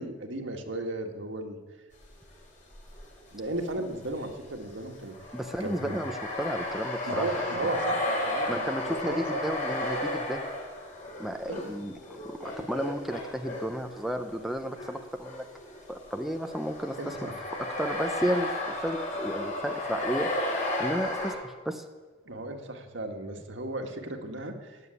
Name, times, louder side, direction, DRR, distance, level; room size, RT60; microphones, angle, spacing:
voice 1, 0.0-1.6 3.3-5.1 5.6-6.0 7.0-9.4 11.5-11.7 17.0-17.3 22.3-24.8, right 2 dB, 70° right, 4 dB, 1.8 m, -35 dB
sound 1, 2.0-2.3 2.7-14.9 15.2-21.3, left 1 dB, 40° left, 5.4 m, -34 dB
voice 2, 5.3-7.7 8.5-10.4 11.2-15.4 15.9-17.3 17.6-20.3 20.8-21.8, equal, ahead, 5 dB, 0.7 m, -33 dB
17.0 x 7.9 x 9.8 m, 1.4 s
head